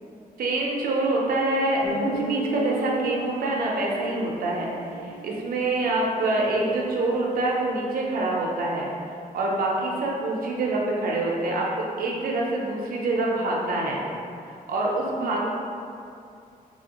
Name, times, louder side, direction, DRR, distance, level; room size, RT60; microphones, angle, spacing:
voice 1, 0.4-8.9 9.3-14.0 14.7-15.5, right 2 dB, 75° right, -3 dB, 0.5 m, -26 dB
Guitar, 1.8-6.4, right 1 dB, 40° left, 0.7 m, -34 dB
2.8 x 2.7 x 2.8 m, 2.5 s
wide cardioid pair, 140°, 15 cm